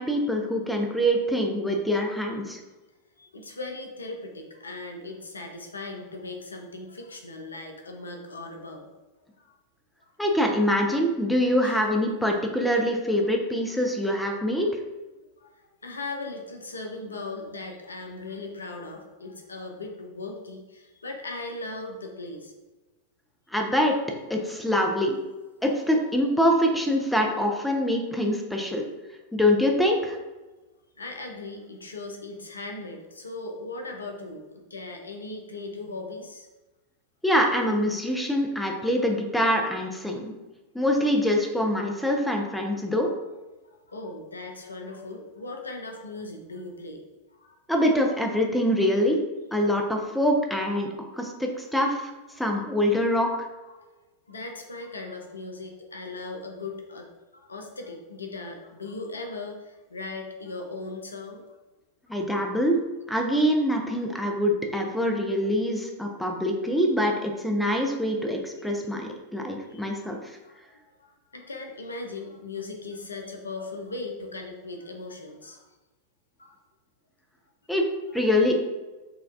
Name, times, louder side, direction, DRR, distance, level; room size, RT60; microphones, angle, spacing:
voice 1, 0.0-2.6 10.2-14.7 23.5-24.0 24.3-25.2 25.6-28.8 29.3-30.2 37.2-40.3 40.7-43.1 47.7-49.2 49.5-50.9 51.2-52.1 52.4-53.3 62.1-62.8 63.1-70.4 77.7-77.9 78.1-78.5, equal, 5° left, 1 dB, 0.4 m, -24 dB
voice 2, 3.2-8.9 9.4-9.5 11.6-11.8 15.4-22.5 31.0-36.5 39.5-39.6 40.1-40.2 43.9-47.1 47.4-47.5 53.6-53.7 54.3-57.0 57.3-61.4 62.1-62.2 69.7-70.0 70.4-75.6 76.4-76.6, left 3 dB, 75° left, 2 dB, 0.5 m, -38 dB
4.3 x 2.3 x 2.4 m, 1.1 s
figure-of-eight pair, 90°, 0 cm